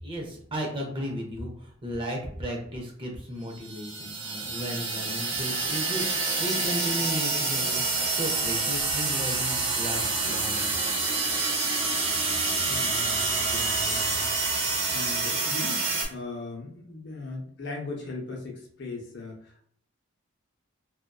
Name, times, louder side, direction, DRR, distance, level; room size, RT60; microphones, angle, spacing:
voice 1, 0.0-7.8 8.1-10.7, equal, 25° right, 0 dB, 0.5 m, -35 dB
sound 1, 3.6-16.0, right 3 dB, 70° right, 0.9 m, -27 dB
voice 2, 12.7-14.3 14.9-15.8 16.1-19.6, left 3 dB, 60° left, 0 dB, 0.6 m, -38 dB
2.5 x 2.2 x 2.3 m, 0.63 s
head